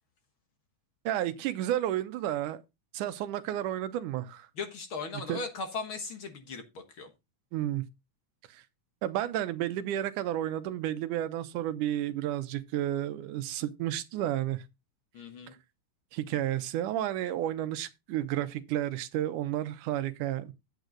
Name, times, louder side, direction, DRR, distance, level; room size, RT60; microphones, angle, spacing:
voice 1, 1.1-2.6 2.9-4.5 5.3-5.4 7.5-7.9 8.5-8.6 9.0-14.6 16.1-20.5, right 12 dB, 85° right, 2.3 m, -31 dB
voice 2, 4.6-7.1 15.1-15.5, left 4 dB, 55° left, 1.7 m, -38 dB
9.2 x 8.2 x 3.8 m
omnidirectional pair, 3.6 m